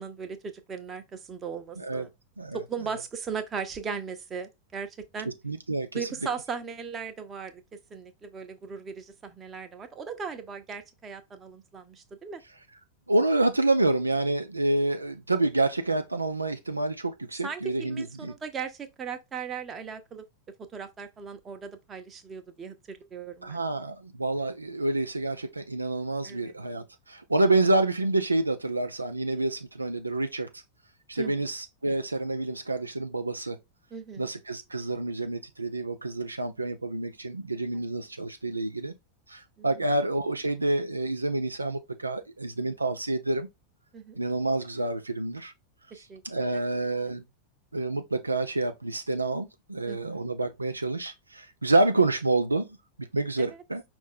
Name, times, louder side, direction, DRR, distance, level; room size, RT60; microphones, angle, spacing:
voice 1, 0.0-2.1 2.5-5.3 5.9-7.6 7.9-12.4 17.4-20.2 20.7-23.6 26.2-26.5 31.2-31.5 33.9-34.3 37.7-37.8 39.6-39.9 43.9-44.2 45.9-46.7 49.9-50.2 53.4-53.6, right 6 dB, 20° right, 0.8 m, -38 dB
voice 2, 1.8-2.1 2.4-2.6 5.4-6.0 13.1-18.3 23.4-30.5 31.1-33.6 34.2-38.9 39.3-43.5 44.2-45.5 46.2-47.2 47.7-52.8 53.1-53.8, right 2 dB, 80° right, 0.4 m, -28 dB
5.2 x 2.6 x 3.7 m
figure-of-eight pair, 90°, 0 cm